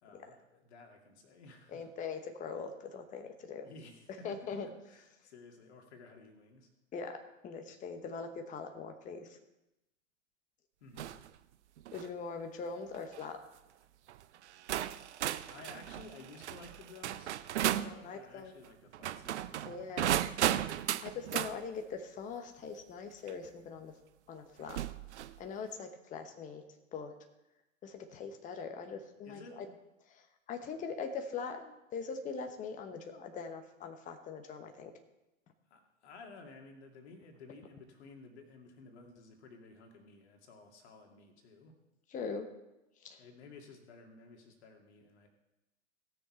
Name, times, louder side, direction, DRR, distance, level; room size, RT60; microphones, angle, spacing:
voice 1, 0.0-1.9 3.6-6.7 10.8-11.1 15.5-17.3 17.7-19.8 29.3-29.7 35.7-41.7 43.2-45.3, left 3 dB, 55° left, 2 dB, 2.3 m, -54 dB
voice 2, 1.7-3.7 4.2-4.7 6.9-9.4 11.9-13.4 17.8-18.5 19.6-20.2 21.0-23.9 24.3-24.8 25.4-26.6 26.9-27.1 27.8-29.7 30.1-34.9 42.1-42.5 43.0-43.2, left 5 dB, 20° left, 6 dB, 1.1 m, -42 dB
sound 1, 11.0-11.3 11.8-12.1 12.9-13.2 14.1-14.2 14.7-17.9 18.9-21.5 23.3-23.4 24.7-25.4, right 12 dB, 60° right, 0.6 m, -35 dB
17.0 x 6.6 x 4.4 m, 0.95 s
figure-of-eight pair, 105°, 39 cm